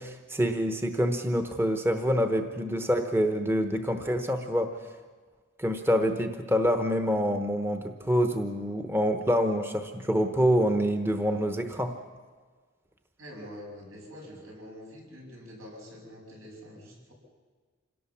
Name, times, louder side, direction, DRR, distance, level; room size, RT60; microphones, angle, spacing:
voice 1, 0.0-4.7 5.6-11.9, equal, 10° right, 6 dB, 1.0 m, -26 dB
voice 2, 13.2-17.1, equal, 85° right, -1 dB, 6.8 m, -45 dB
26.5 x 17.5 x 7.2 m, 1.5 s
head